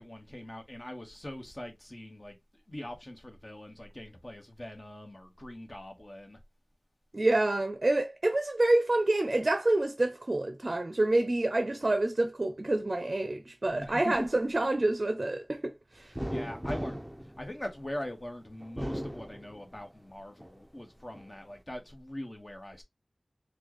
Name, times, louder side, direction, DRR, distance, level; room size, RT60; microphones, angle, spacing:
voice 1, 0.0-2.4 2.7-6.4 13.8-14.3 16.1-17.1 17.4-22.8, left 1 dB, 35° left, 1.1 m, -42 dB
voice 2, 7.1-16.1, right 2 dB, 55° right, 0.5 m, -27 dB
sound 1, 16.1-18.1 18.6-19.9 20.4-21.3, equal, 5° right, 0.6 m, -38 dB
4.3 x 2.2 x 2.9 m
wide cardioid pair, 50°, 0 cm